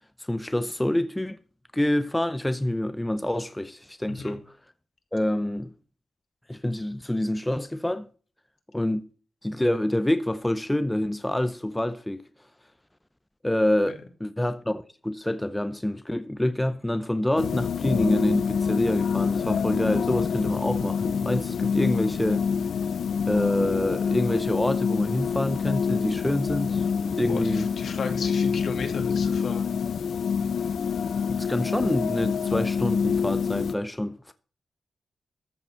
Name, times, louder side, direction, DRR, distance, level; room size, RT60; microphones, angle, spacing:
voice 1, 0.3-1.4 1.7-4.5 5.1-5.7 6.5-8.1 8.7-9.1 9.4-12.3 13.4-22.5 23.3-26.9 27.1-27.7 31.3-34.3, left 1 dB, 10° left, 0.6 m, -27 dB
sound 1, 17.4-33.7, left 6 dB, 90° left, 0.8 m, -26 dB
voice 2, 27.3-29.8, left 4 dB, 70° left, 2.3 m, -34 dB
13.5 x 7.0 x 5.7 m
wide cardioid pair, 115°, 0 cm